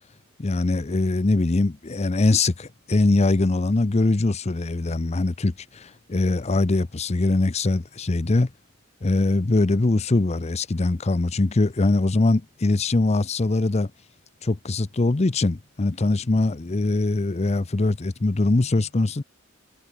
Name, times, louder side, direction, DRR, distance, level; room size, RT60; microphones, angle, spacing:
voice 1, 0.4-8.5 9.0-13.9 14.4-19.2, left 2 dB, 30° left, 0.6 m, -22 dB
head